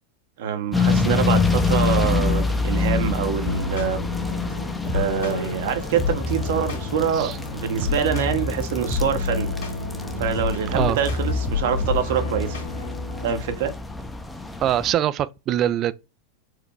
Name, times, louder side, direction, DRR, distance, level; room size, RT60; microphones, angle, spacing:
voice 1, 0.4-4.0 4.8-9.5 10.2-12.6 13.2-13.7, right 7 dB, 70° right, 0.9 m, -25 dB
sound 1, 0.7-14.9, left 4 dB, 5° left, 0.6 m, -27 dB
sound 2, 3.4-13.3, left 4 dB, 80° left, 1.8 m, -29 dB
voice 2, 14.6-15.9, right 11 dB, 40° right, 0.3 m, -23 dB
4.7 x 2.2 x 3.2 m
hypercardioid pair, 105°, 0 cm